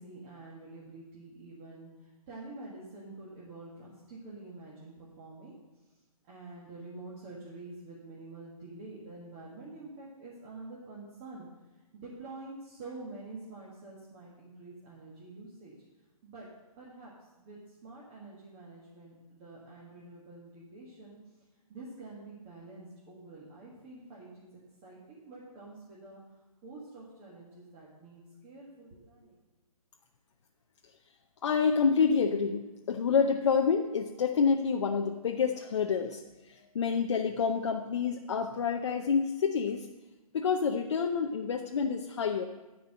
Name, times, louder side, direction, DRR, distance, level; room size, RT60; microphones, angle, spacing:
voice 1, 0.0-5.5 6.3-11.5 11.9-15.7 16.2-16.5 16.8-21.2 21.7-24.5 24.8-26.2 26.6-29.4, right 2 dB, 20° right, -6 dB, 1.7 m, -47 dB
voice 2, 31.4-39.9 40.3-42.4, left 6 dB, 50° left, 3 dB, 0.7 m, -28 dB
13.5 x 4.7 x 7.8 m, 1.1 s
hypercardioid pair, 165°, 19 cm